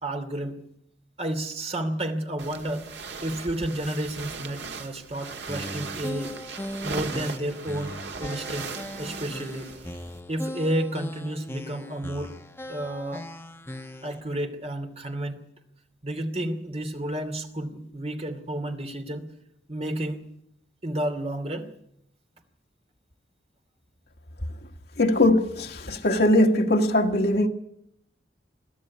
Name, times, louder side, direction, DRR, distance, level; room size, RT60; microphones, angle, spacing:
voice 1, 0.0-0.6 1.2-2.9 3.2-6.3 6.8-9.7 10.3-12.3 12.7-13.3 14.0-15.4 16.0-19.3 19.7-20.3 20.8-21.7, right 1 dB, 35° right, 2.6 m, -31 dB
sound 1, 2.4-10.2, right 4 dB, 65° right, 1.7 m, -38 dB
sound 2, 5.5-14.2, left 1 dB, 15° left, 1.0 m, -39 dB
voice 2, 25.0-27.5, left 1 dB, 60° left, 1.7 m, -21 dB
22.5 x 14.0 x 9.7 m
head